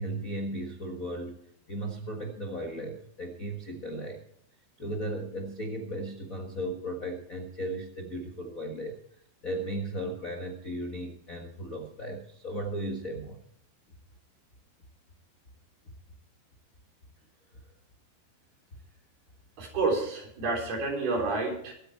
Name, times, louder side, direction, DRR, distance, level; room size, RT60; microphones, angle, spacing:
voice 1, 0.0-1.4 1.7-4.2 4.8-9.0 9.4-13.4, right 1 dB, 50° left, 3 dB, 1.0 m, -36 dB
voice 2, 19.6-21.7, right 3 dB, 75° right, 1 dB, 5.7 m, -29 dB
23.0 x 9.1 x 4.5 m, 0.70 s
omnidirectional pair, 4.4 m